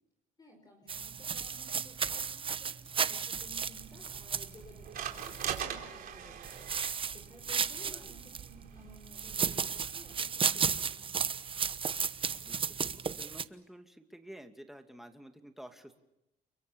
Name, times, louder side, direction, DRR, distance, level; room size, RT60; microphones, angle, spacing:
voice 1, 0.4-2.8 3.1-6.6 7.1-11.1, equal, 25° left, 3 dB, 5.2 m, -56 dB
sound 1, 0.9-5.6 6.4-8.5 9.1-13.4, right 6 dB, 30° right, 1.0 m, -34 dB
sound 2, 3.3-10.2, right 9 dB, 60° right, 4.2 m, -43 dB
voice 2, 12.4-16.0, right 1 dB, ahead, 5 dB, 2.6 m, -51 dB
30.0 x 23.0 x 7.1 m, 0.87 s
cardioid pair, 110°, 17 cm